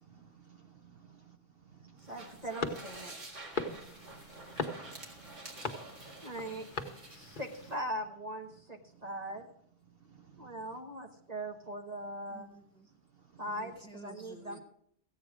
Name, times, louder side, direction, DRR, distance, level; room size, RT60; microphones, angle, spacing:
voice 1, 0.0-1.4 1.6-2.1 3.7-6.6 7.2-7.4 8.9-9.0 10.0-10.7 13.2-13.4, right 7 dB, 55° right, 5 dB, 1.1 m, -58 dB
sound 1, 2.0-7.8, right 2 dB, 85° right, 2.3 m, -49 dB
voice 2, 2.1-3.1 6.2-6.6 7.1-9.5 10.4-12.5 13.4-13.7 14.0-14.6, right 1 dB, 35° right, 2 dB, 1.2 m, -40 dB
sound 2, 2.6-7.8, left 4 dB, 45° left, 1.2 m, -41 dB
voice 3, 12.3-12.9 13.4-14.6, right 1 dB, 5° left, 3 dB, 1.3 m, -52 dB
15.0 x 8.7 x 5.0 m, 0.68 s
omnidirectional pair, 1.2 m